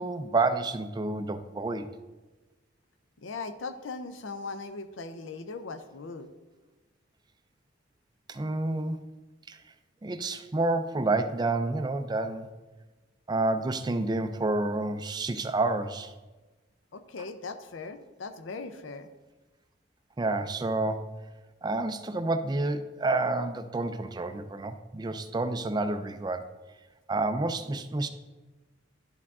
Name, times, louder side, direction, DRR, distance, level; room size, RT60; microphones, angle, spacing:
voice 1, 0.0-1.9 8.3-9.0 9.5-9.6 10.0-12.5 13.3-16.1 20.2-21.2 21.6-26.5 27.1-28.1, right 2 dB, 20° right, 10 dB, 0.3 m, -29 dB
voice 2, 3.2-6.3 16.9-19.1, left 3 dB, 75° left, 10 dB, 0.6 m, -39 dB
11.0 x 4.6 x 3.6 m, 1.2 s
head